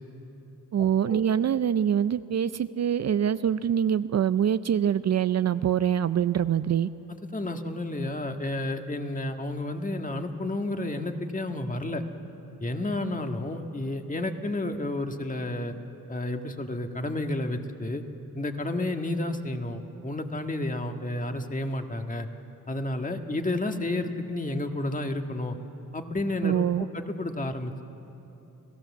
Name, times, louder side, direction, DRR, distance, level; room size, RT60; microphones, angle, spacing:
voice 1, 0.7-6.9 26.4-26.8, right 9 dB, 50° right, 13 dB, 0.6 m, -24 dB
voice 2, 7.3-12.0 12.6-15.7 16.1-18.0 18.3-22.3 22.7-25.6 25.9-27.8, left 2 dB, 25° left, 5 dB, 1.7 m, -31 dB
30.0 x 17.5 x 7.3 m, 2.9 s
cardioid pair, 90°, 34 cm